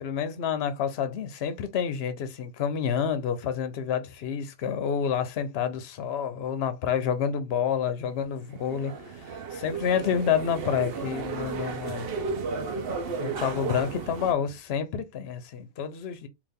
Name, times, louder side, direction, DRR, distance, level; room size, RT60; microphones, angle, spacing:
voice 1, 0.0-12.1 13.2-16.3, left 7 dB, 55° left, 0.9 m, -29 dB
sound 1, 8.4-14.3, right 5 dB, 50° right, 0.8 m, -34 dB
4.1 x 2.5 x 3.5 m
omnidirectional pair, 1.5 m